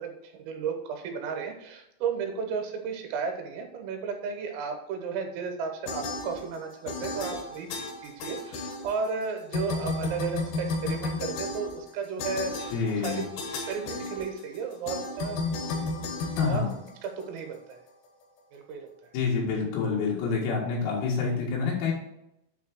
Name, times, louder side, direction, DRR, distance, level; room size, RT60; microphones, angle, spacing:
voice 1, 0.0-13.2 13.7-15.4 16.5-16.6 17.0-17.8 18.5-18.9, right 5 dB, 80° right, 3 dB, 3.8 m, -34 dB
sound 1, 5.9-6.6 6.9-9.2 9.5-17.4, left 3 dB, 70° left, 2.3 m, -33 dB
voice 2, 12.7-13.2 16.4-16.7 19.1-21.9, left 5 dB, 90° left, -4 dB, 4.8 m, -27 dB
9.5 x 3.4 x 6.4 m, 0.82 s
omnidirectional pair, 5.9 m